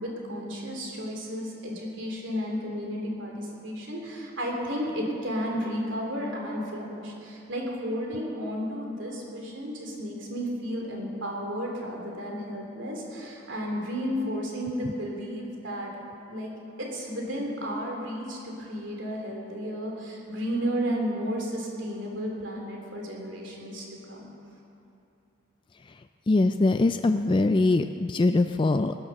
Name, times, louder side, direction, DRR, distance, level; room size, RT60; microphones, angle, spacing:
voice 1, 0.0-15.9 16.3-16.5 16.8-24.3, equal, 65° right, -1 dB, 3.3 m, -33 dB
voice 2, 25.7-28.9, left 2 dB, 25° left, 8 dB, 0.3 m, -23 dB
19.5 x 10.5 x 6.5 m, 2.7 s
head